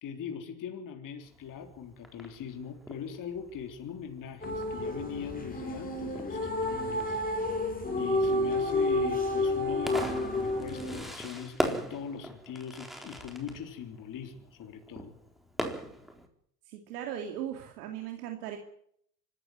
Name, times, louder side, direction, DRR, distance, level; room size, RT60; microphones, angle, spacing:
voice 1, 0.0-7.2 8.0-15.2, left 7 dB, 40° left, 5 dB, 3.6 m, -41 dB
Fireworks, 1.2-16.3, equal, ahead, 3.9 m, -41 dB
sound 1, 4.4-11.1, left 2 dB, 20° left, 6.8 m, -30 dB
voice 2, 16.7-18.6, right 10 dB, 75° right, 4 dB, 2.8 m, -38 dB
24.5 x 13.5 x 9.5 m, 0.68 s
hypercardioid pair, 90°, 46 cm